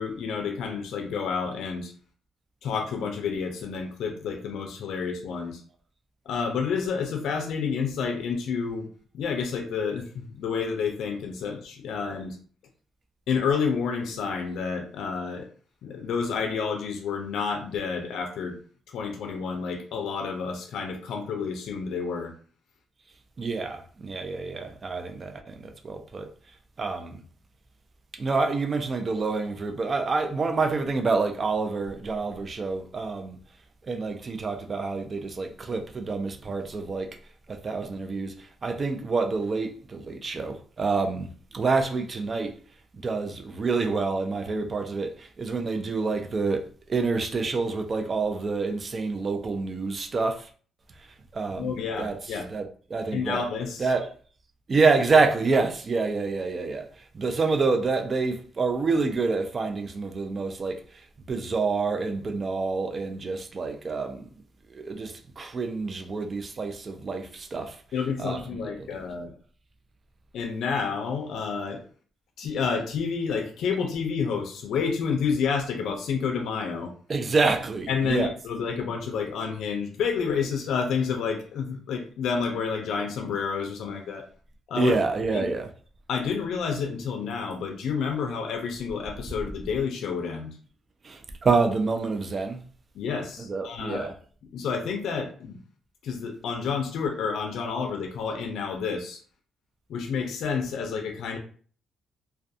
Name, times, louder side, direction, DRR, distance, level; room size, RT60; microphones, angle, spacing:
voice 1, 0.0-1.9 2.6-5.6 6.3-8.9 9.1-12.4 13.3-15.5 15.8-18.6 18.9-22.3 51.6-52.5 53.1-53.9 67.9-69.3 70.3-71.8 72.4-76.9 77.9-84.3 84.7-84.9 85.3-85.5 86.1-90.6 92.9-94.1 94.5-95.6 96.0-99.2 99.9-101.4, left 6 dB, 75° left, 0.4 m, -29 dB
voice 2, 23.4-26.3 26.8-27.2 28.2-33.4 33.8-37.1 37.5-42.6 42.9-50.5 51.3-53.4 53.8-54.1 54.7-64.3 64.7-67.8 68.2-68.9 77.1-78.3 84.8-85.7 91.0-92.6 93.4-94.1, right 4 dB, 40° right, 0.5 m, -27 dB
2.3 x 2.2 x 2.6 m
cardioid pair, 90°, 0 cm